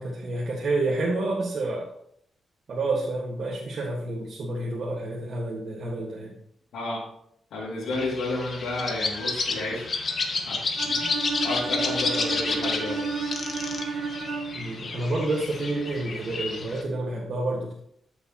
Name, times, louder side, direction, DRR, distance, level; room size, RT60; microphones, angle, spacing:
voice 1, 0.0-1.9 2.7-6.4 14.5-17.8, right 2 dB, 60° right, -3 dB, 1.7 m, -29 dB
voice 2, 6.7-7.1 7.5-9.9 10.5-10.6 10.8-11.1 11.4-13.0, left 2 dB, 90° left, -7 dB, 2.6 m, -31 dB
sound 1, 7.9-16.8, left 4 dB, 50° left, 1.7 m, -31 dB
Bowed string instrument, 10.8-14.7, right 4 dB, 80° right, 2.0 m, -32 dB
12.5 x 6.9 x 3.0 m, 0.70 s
cardioid pair, 85°, 0 cm